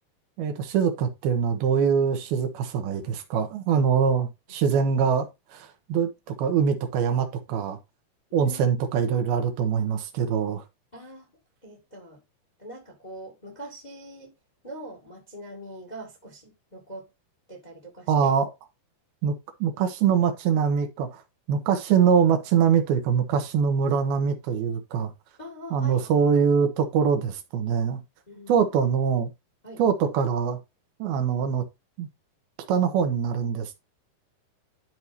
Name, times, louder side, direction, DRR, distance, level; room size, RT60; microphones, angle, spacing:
voice 1, 0.4-7.8 8.3-10.6 18.1-18.5 19.2-19.3 19.6-21.2 21.5-25.1 25.7-28.0 28.5-29.3 29.8-30.6 31.0-31.6 32.0-32.1 32.7-33.8, right 7 dB, 75° right, 2.9 m, -23 dB
voice 2, 8.4-9.2 10.9-11.3 11.6-12.2 12.6-14.3 14.6-17.1 17.5-18.3 25.4-26.1 28.3-28.6 29.6-29.8, right 1 dB, 20° left, 1.1 m, -42 dB
12.5 x 4.7 x 2.7 m
omnidirectional pair, 4.5 m